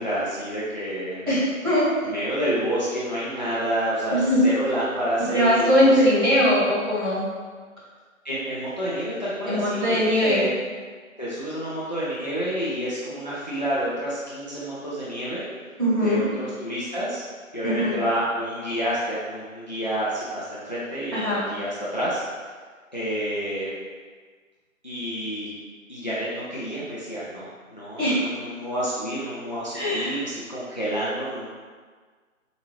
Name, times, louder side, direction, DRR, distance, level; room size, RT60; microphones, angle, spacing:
voice 1, 0.0-1.4 2.0-5.9 8.2-10.5 11.2-15.4 16.0-17.2 17.5-22.2 22.9-23.7 24.8-25.5 25.9-31.5, right 1 dB, 35° left, -8 dB, 0.5 m, -29 dB
voice 2, 1.3-1.9 4.1-4.4 5.3-7.3 9.5-10.4 15.8-16.2 17.6-18.0 21.1-21.4 28.0-28.2 29.7-30.1, equal, 20° right, -14 dB, 1.4 m, -21 dB
4.8 x 2.6 x 3.0 m, 1.5 s
figure-of-eight pair, 150°, 41 cm